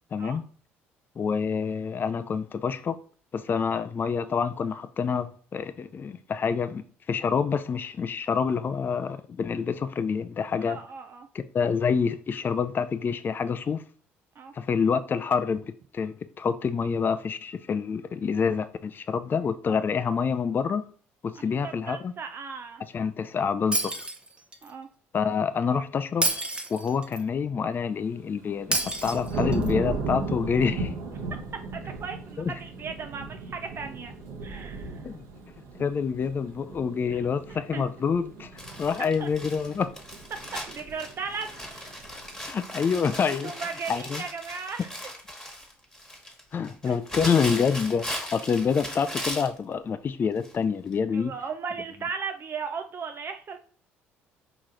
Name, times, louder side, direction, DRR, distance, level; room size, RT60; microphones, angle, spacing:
voice 1, 0.1-0.4 1.2-3.0 3.3-10.8 11.3-13.8 14.5-20.8 21.2-22.1 22.9-24.1 25.1-26.3 26.7-30.9 32.4-32.5 35.0-35.2 35.8-38.5 38.8-39.9 42.4-43.5 43.9-44.2 46.5-51.3, left 6 dB, 35° left, 0.4 m, -27 dB
voice 2, 10.6-11.3 14.4-14.5 21.6-22.8 24.6-24.9 31.7-34.1 34.4-35.0 37.1-37.2 37.7-37.8 39.2-39.3 40.5-42.1 43.3-45.1 46.9-47.0 51.1-53.6, right 5 dB, 45° right, 0.4 m, -37 dB
Shatter, 23.7-24.7 26.2-27.2 28.7-29.7, right 2 dB, 15° right, 0.8 m, -29 dB
sound 1, 28.2-42.4, right 3 dB, 70° right, 1.0 m, -36 dB
Crumpling crinkling, 38.6-49.6 50.4-50.6 50.9-51.0, left 1 dB, 10° left, 1.5 m, -38 dB
4.7 x 3.0 x 3.8 m
hypercardioid pair, 65°, 6 cm